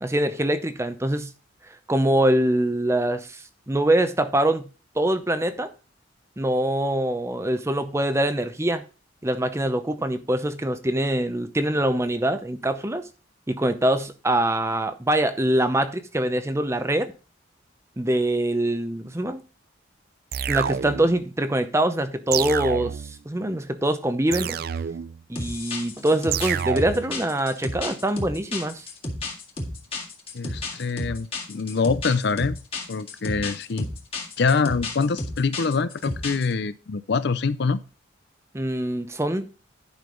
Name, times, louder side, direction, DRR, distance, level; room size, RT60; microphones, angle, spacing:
voice 1, 0.0-1.3 1.9-3.4 3.7-4.7 5.0-5.7 6.4-8.8 9.2-13.0 13.5-17.1 18.0-19.4 20.5-23.0 23.3-24.6 25.3-28.8 38.5-39.5, right 1 dB, 15° right, 0.6 m, -24 dB
sound 1, 20.3-21.2 22.3-23.2 24.3-25.2 26.3-27.2, right 8 dB, 50° right, 0.3 m, -28 dB
sound 2, 25.4-36.5, left 2 dB, 30° left, 1.8 m, -32 dB
voice 2, 30.3-32.6 32.9-33.9 34.4-37.8, left 4 dB, 55° left, 0.5 m, -25 dB
10.5 x 5.6 x 3.8 m
head